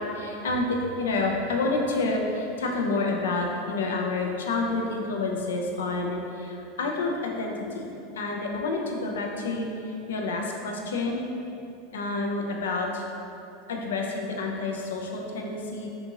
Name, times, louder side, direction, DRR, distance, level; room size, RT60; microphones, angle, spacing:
voice 1, 0.0-7.9 8.1-11.2 11.9-13.1 13.7-15.9, left 3 dB, 75° left, 1 dB, 0.3 m, -29 dB
2.6 x 2.6 x 2.8 m, 2.8 s
hypercardioid pair, 85°, 0 cm